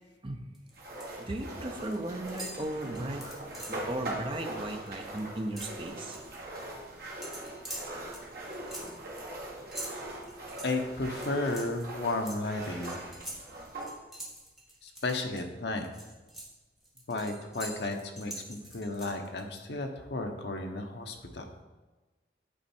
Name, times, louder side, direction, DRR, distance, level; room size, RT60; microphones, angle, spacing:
sound 1, 0.5-1.2 1.5-2.0 2.3-3.9 4.3-4.5 4.7-6.4 7.2-15.4 15.8-19.4, right 1 dB, ahead, 1.0 m, -45 dB
sound 2, 0.7-13.9, right 1 dB, 55° right, 1.5 m, -41 dB
voice 1, 1.2-3.2 3.7-6.2, right 1 dB, 30° right, 5 dB, 0.6 m, -36 dB
voice 2, 10.6-12.9 14.8-15.9 17.1-21.5, left 2 dB, 70° left, 4 dB, 0.9 m, -33 dB
8.8 x 4.3 x 4.4 m, 1.2 s
head